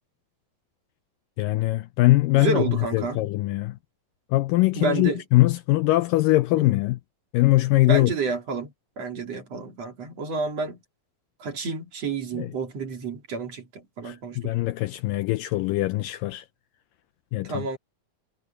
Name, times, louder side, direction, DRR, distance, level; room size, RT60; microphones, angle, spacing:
voice 1, 1.4-2.7 2.9-3.8 4.3-7.0 7.3-8.1 12.3-12.5 14.0-16.5 17.3-17.6, left 18 dB, 80° left, 2.0 m, -22 dB
voice 2, 2.4-3.2 4.7-5.2 6.5-6.8 7.9-10.8 11.4-14.5 17.4-17.8, right 4 dB, 45° right, 3.6 m, -30 dB
omnidirectional pair, 4.3 m